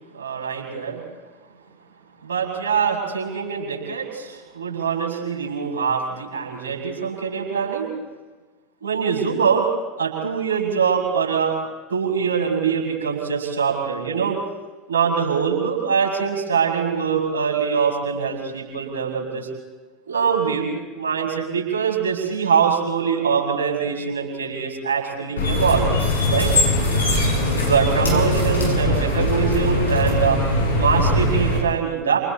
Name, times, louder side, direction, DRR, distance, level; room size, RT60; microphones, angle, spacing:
voice 1, 0.1-1.0 2.2-8.0 8.8-9.7 10.0-11.6 11.9-14.4 14.9-19.5 20.1-20.7 20.9-25.9 26.3-26.5 27.5-30.4 30.8-32.2, right 6 dB, 75° right, 0 dB, 7.4 m, -23 dB
sound 1, 25.4-31.6, left 2 dB, 80° left, 6.8 m, -21 dB
29.5 x 28.5 x 4.4 m, 1.3 s
figure-of-eight pair, 75°, 0 cm